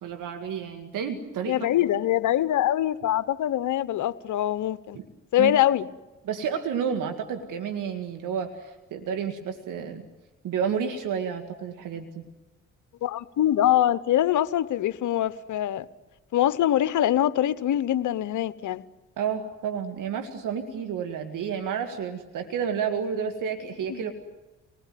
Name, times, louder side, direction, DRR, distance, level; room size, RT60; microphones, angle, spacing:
voice 1, 0.0-1.6 4.9-5.1 5.4-5.5 6.2-10.0 10.4-12.2 19.2-24.1, right 7 dB, 65° right, 2.0 m, -30 dB
voice 2, 1.5-5.0 5.3-5.9 13.0-15.8 16.3-18.8 23.9-24.0, left 12 dB, 60° left, 1.1 m, -24 dB
27.0 x 20.0 x 9.3 m
hypercardioid pair, 50°, 33 cm